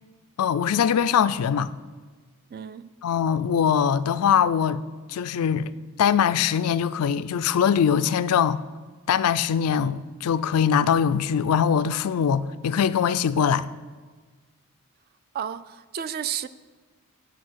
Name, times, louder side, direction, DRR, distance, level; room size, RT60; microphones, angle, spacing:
voice 1, 0.4-1.7 3.0-4.8 5.1-5.7 6.0-8.6 9.1-13.7, left 7 dB, 90° left, 0.4 m, -22 dB
voice 2, 2.5-2.9 15.3-16.5, right 9 dB, 45° right, 0.3 m, -32 dB
8.5 x 6.4 x 6.3 m
head